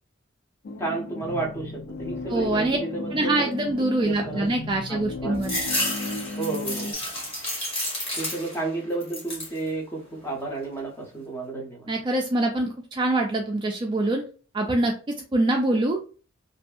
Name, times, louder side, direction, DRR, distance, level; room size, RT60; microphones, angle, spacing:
sound 1, 0.6-6.9, left 2 dB, 55° left, 0.3 m, -35 dB
voice 1, 0.8-3.5 4.0-4.5 4.9-5.5 6.4-6.9 8.2-11.9, right 3 dB, 15° left, -1 dB, 0.8 m, -32 dB
voice 2, 2.3-2.8 3.1-5.5 11.9-14.2 14.5-14.9 15.3-16.0, right 2 dB, 25° right, 1 dB, 0.3 m, -24 dB
sound 2, 5.4-8.7 9.0-9.6 10.1-10.8, left 1 dB, 30° left, 1.2 m, -31 dB
2.6 x 2.6 x 2.3 m, 0.37 s
head